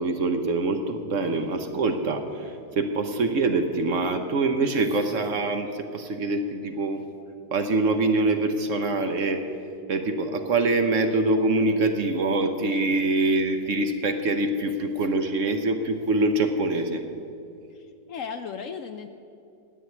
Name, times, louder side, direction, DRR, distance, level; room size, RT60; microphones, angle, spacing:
voice 1, 0.0-7.0 7.5-9.4 9.9-17.0, right 2 dB, 55° right, 6 dB, 1.1 m, -24 dB
voice 2, 17.7-19.1, left 6 dB, 65° left, 7 dB, 0.8 m, -36 dB
10.0 x 8.2 x 9.1 m, 2.6 s
omnidirectional pair, 1.7 m